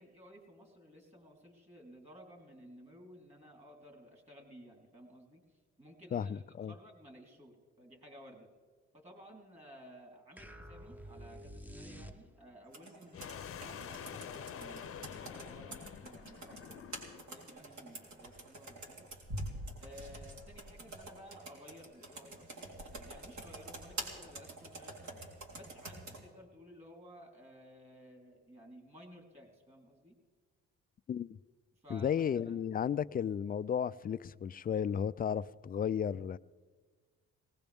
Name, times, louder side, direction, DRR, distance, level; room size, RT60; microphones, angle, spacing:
voice 1, 0.0-5.4 5.8-8.5 8.9-19.1 19.8-25.2 25.5-30.2 31.7-32.1 32.5-32.6, equal, 20° right, 3.8 m, -55 dB
voice 2, 6.1-6.7 31.1-31.4 31.9-36.4, left 8 dB, 30° left, 0.4 m, -34 dB
sound 1, 10.4-12.6, equal, 5° right, 0.8 m, -49 dB
Computer keyboard, 12.7-26.2, right 1 dB, 65° right, 3.6 m, -47 dB
sound 2, 13.1-17.4, left 8 dB, 45° left, 0.7 m, -47 dB
20.0 x 18.5 x 3.5 m
cardioid pair, 90°, 30 cm